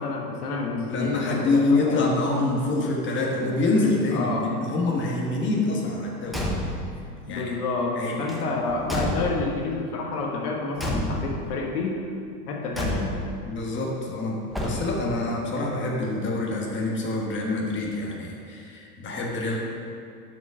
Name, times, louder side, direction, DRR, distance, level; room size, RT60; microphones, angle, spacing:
voice 1, 0.0-2.1 4.1-4.5 7.3-12.0 12.5-13.2, left 3 dB, 80° left, -1 dB, 1.5 m, -29 dB
voice 2, 0.9-6.5 7.3-7.5 7.9-8.2 13.4-19.6, left 2 dB, 25° left, -2 dB, 1.4 m, -26 dB
Car / Truck / Slam, 6.2-7.0 8.2-9.7 10.8-11.5 12.7-13.4 14.5-15.2, equal, ahead, 0.9 m, -30 dB
6.4 x 5.4 x 6.2 m, 2.4 s
hypercardioid pair, 110°, 45 cm